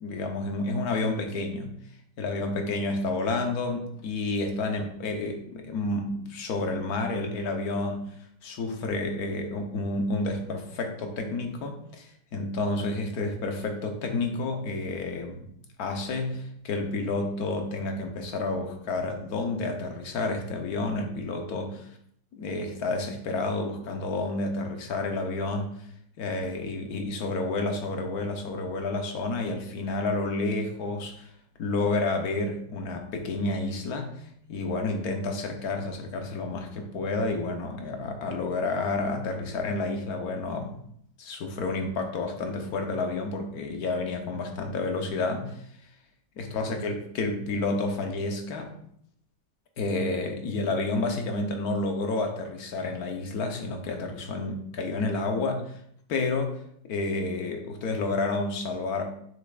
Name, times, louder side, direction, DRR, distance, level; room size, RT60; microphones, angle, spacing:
voice 1, 0.0-1.7 2.2-8.1 8.4-15.5 15.8-21.9 22.3-25.7 26.2-31.3 31.6-34.1 34.5-40.7 41.2-45.6 46.4-48.7 49.8-55.8 56.1-56.6 56.8-59.1, left 2 dB, 55° left, 4 dB, 1.3 m, -30 dB
7.6 x 6.7 x 2.5 m, 0.67 s
omnidirectional pair, 2.1 m